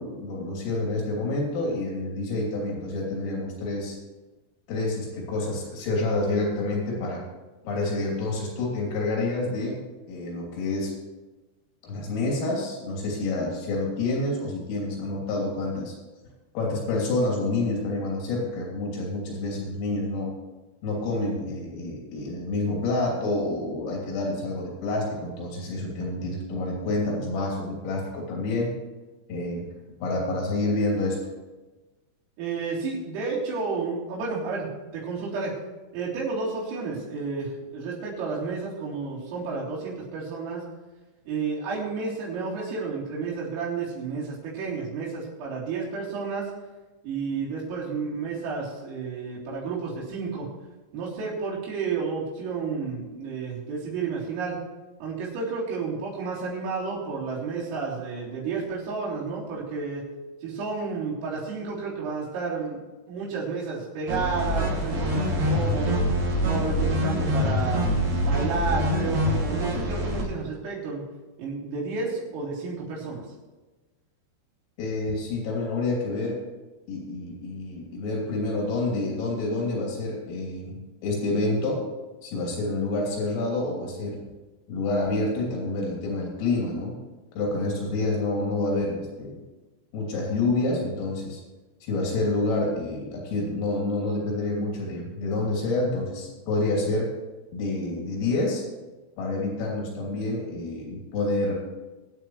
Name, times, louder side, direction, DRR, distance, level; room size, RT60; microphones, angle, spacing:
voice 1, 0.0-4.0 4.7-7.2 7.7-10.9 11.8-15.9 16.6-20.3 20.8-28.7 29.3-29.6 30.0-31.2 74.8-76.4 76.9-80.8 81.0-81.9 82.2-84.2 84.7-87.0 87.4-89.4 89.9-91.4 91.8-97.1 97.5-98.6 99.2-101.5, left 2 dB, 85° left, -2 dB, 5.7 m, -28 dB
voice 2, 32.4-34.7 34.9-35.6 35.9-40.6 41.3-46.5 47.0-50.5 50.9-54.6 55.0-60.0 60.4-66.1 66.4-71.0 71.4-73.2, right 4 dB, 85° right, -6 dB, 6.2 m, -31 dB
sound 1, 64.1-70.2, equal, 45° right, 3.3 m, -25 dB
23.0 x 9.1 x 3.2 m, 1.2 s
omnidirectional pair, 5.8 m